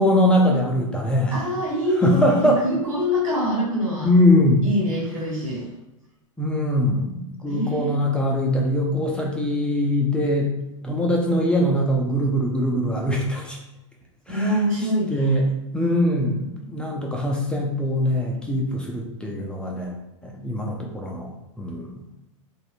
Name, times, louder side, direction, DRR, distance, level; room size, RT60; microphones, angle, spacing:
voice 1, 0.0-1.4 2.0-2.6 4.0-4.6 6.4-10.5 10.8-13.6 14.3-14.6 15.1-15.5 15.7-19.9 20.2-21.3 21.6-21.9, left 1 dB, 5° left, -2 dB, 0.4 m, -22 dB
voice 2, 1.3-4.1 4.6-5.7 7.4-8.0 14.3-15.4, equal, 90° right, -3 dB, 1.2 m, -24 dB
2.6 x 2.2 x 2.4 m, 0.94 s
hypercardioid pair, 110°, 17 cm